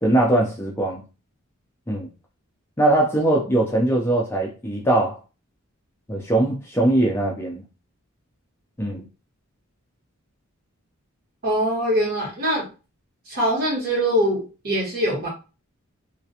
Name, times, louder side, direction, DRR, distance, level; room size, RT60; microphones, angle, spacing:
voice 1, 0.0-1.0 1.9-2.1 2.8-5.2 6.1-7.6 8.8-9.0, right 1 dB, 10° left, 0.4 m, -21 dB
voice 2, 11.4-12.7 13.3-15.3, equal, 45° right, 1.2 m, -23 dB
2.4 x 2.1 x 2.7 m
head